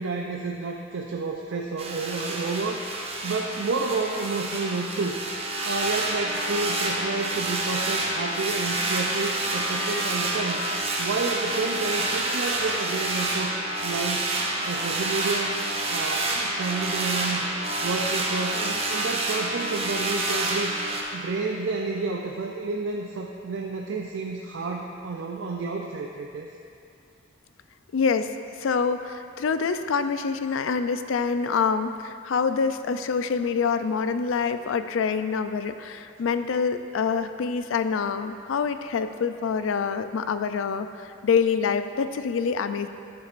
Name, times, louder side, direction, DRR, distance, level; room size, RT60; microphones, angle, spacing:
voice 1, 0.0-2.8 3.2-5.2 5.7-13.5 13.8-14.4 14.7-15.6 15.9-17.5 17.8-20.7 21.1-26.5, right 3 dB, 65° right, 1 dB, 0.4 m, -30 dB
sound 1, 1.8-21.0, right 2 dB, 30° right, 0.7 m, -28 dB
voice 2, 27.9-28.3 28.6-40.9 41.2-42.9, left 5 dB, 85° left, 10 dB, 0.4 m, -26 dB
11.5 x 7.1 x 2.5 m, 2.5 s
head